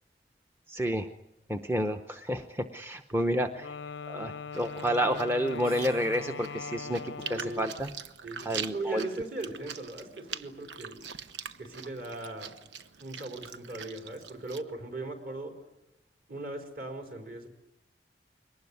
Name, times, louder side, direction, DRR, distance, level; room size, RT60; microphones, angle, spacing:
voice 1, 0.7-1.1 1.5-3.6 4.1-7.9 8.4-9.1, equal, 15° right, 6 dB, 0.8 m, -30 dB
Wind instrument woodwind instrument, 3.6-7.9, left 5 dB, 90° left, 0.8 m, -41 dB
Chewing mastication, 4.5-14.6, right 7 dB, 85° right, 1.1 m, -44 dB
sound 1, 5.6-6.7, right 6 dB, 35° right, 3.8 m, -53 dB
voice 2, 7.2-7.6 8.2-11.0 11.6-12.5 13.0-15.6 16.3-17.5, right 2 dB, 55° right, 4 dB, 4.4 m, -39 dB
22.5 x 19.5 x 9.6 m, 0.91 s
head